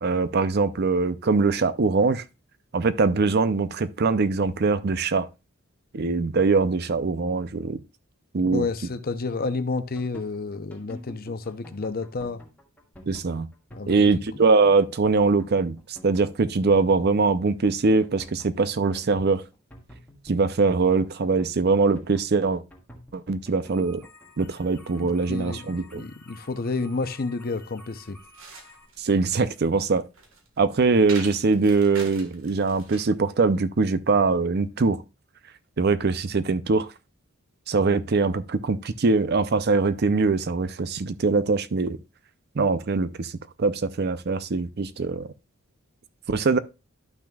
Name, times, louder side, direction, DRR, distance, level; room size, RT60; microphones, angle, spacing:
voice 1, 0.0-2.2 2.7-5.3 5.9-7.8 8.3-8.7 13.1-13.5 13.9-15.8 16.0-19.4 20.3-22.6 23.1-24.0 24.4-26.0 29.0-30.0 30.6-35.0 35.8-36.9 37.7-42.0 42.6-43.3 43.6-45.3 46.3-46.6, right 4 dB, 50° right, 0.5 m, -22 dB
voice 2, 8.5-12.4 13.7-14.2 24.9-28.2, left 3 dB, 45° left, 0.6 m, -30 dB
sound 1, 9.8-28.9, equal, 10° left, 1.8 m, -49 dB
sound 2, 28.0-33.2, right 4 dB, 70° right, 1.5 m, -43 dB
12.5 x 6.0 x 2.3 m
head